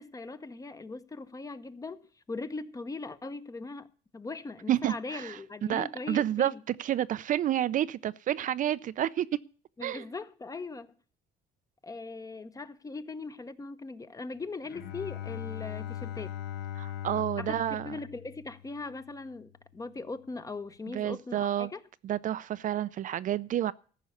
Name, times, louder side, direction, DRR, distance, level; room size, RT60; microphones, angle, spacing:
voice 1, 0.0-3.9 4.1-6.6 9.8-10.9 11.8-16.4 17.4-21.8, left 3 dB, 20° left, 0.8 m, -40 dB
voice 2, 4.7-5.4 5.7-9.4 9.8-10.0 16.8-18.0 20.9-21.7 22.0-23.7, right 11 dB, 50° right, 0.5 m, -30 dB
Bowed string instrument, 14.6-19.1, left 10 dB, 75° left, 1.4 m, -40 dB
14.5 x 5.5 x 8.3 m
cardioid pair, 110°, 17 cm